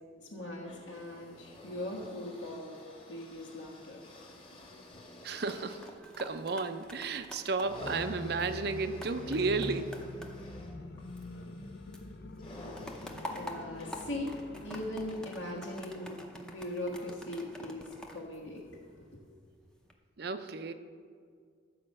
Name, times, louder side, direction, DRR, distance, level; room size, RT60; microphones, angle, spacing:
voice 1, 0.2-2.7 3.1-4.1 4.9-5.0 13.2-19.2, left 1 dB, 75° left, -5 dB, 1.6 m, -40 dB
sound 1, 0.6-16.1 16.9-17.0, left 1 dB, 25° left, 1.6 m, -51 dB
sound 2, 5.2-11.7 11.9-19.1 19.6-19.9, equal, 5° left, 0.7 m, -48 dB
voice 2, 5.2-10.0 20.2-20.7, right 4 dB, 55° right, 10 dB, 0.6 m, -33 dB
sound 3, 7.6-15.3, left 2 dB, 55° left, 0.5 m, -45 dB
12.0 x 5.1 x 7.6 m, 2.1 s
head